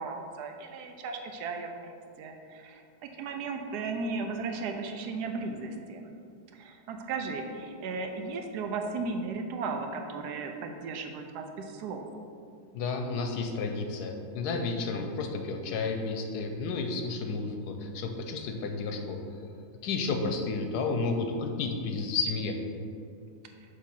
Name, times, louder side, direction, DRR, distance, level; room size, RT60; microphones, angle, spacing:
voice 1, 0.0-6.1 6.5-12.0, right 4 dB, 75° right, 4 dB, 1.1 m, -36 dB
voice 2, 12.7-19.2 19.8-22.6, left 4 dB, 75° left, 4 dB, 1.1 m, -31 dB
6.6 x 3.2 x 5.4 m, 2.4 s
omnidirectional pair, 1.8 m